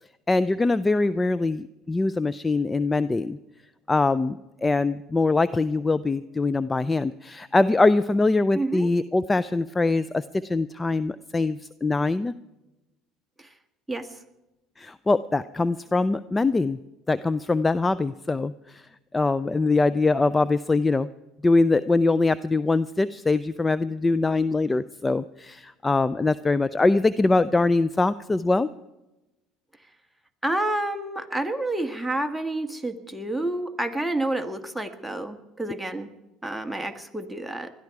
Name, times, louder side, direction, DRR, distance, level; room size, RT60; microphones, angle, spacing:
voice 1, 0.3-3.4 3.9-12.3 14.8-16.8 17.1-18.8 19.1-21.1 21.4-28.7, left 3 dB, 20° left, 16 dB, 0.5 m, -23 dB
voice 2, 8.5-8.9 13.9-14.1 30.4-36.1 36.4-37.7, right 1 dB, ahead, 5 dB, 1.6 m, -29 dB
20.5 x 13.0 x 4.8 m, 1.0 s
hypercardioid pair, 80°, 0 cm